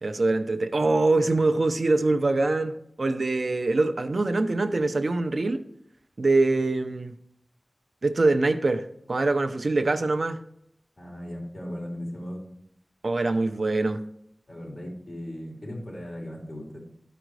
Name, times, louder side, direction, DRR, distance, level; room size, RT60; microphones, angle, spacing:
voice 1, 0.0-5.6 6.2-7.1 8.0-10.4 13.0-14.0, right 2 dB, 70° right, 9 dB, 0.6 m, -24 dB
voice 2, 11.0-12.4 14.5-16.8, equal, 45° left, -2 dB, 3.6 m, -37 dB
12.5 x 5.1 x 4.7 m, 0.71 s
wide cardioid pair, 65°, 0 cm